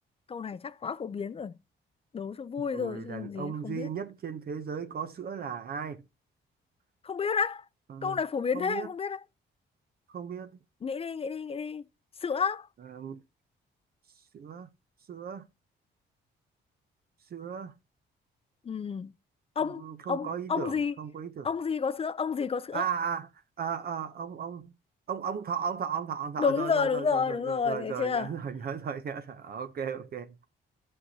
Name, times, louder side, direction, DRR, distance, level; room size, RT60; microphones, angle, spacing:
voice 1, 0.3-1.5 2.1-3.9 7.0-7.6 8.0-9.2 10.8-11.8 12.2-12.7 18.7-19.1 19.6-19.8 20.1-20.9 21.4-22.9 26.4-28.3, left 6 dB, 30° left, 0.4 m, -30 dB
voice 2, 2.7-6.0 7.9-8.2 8.5-8.9 10.1-10.6 12.8-13.2 14.3-14.7 15.1-15.4 17.3-17.7 19.6-21.5 22.7-23.3 23.6-24.7 25.1-30.4, right 7 dB, 50° right, 0.7 m, -36 dB
11.5 x 5.4 x 2.7 m
cardioid pair, 90°, 20 cm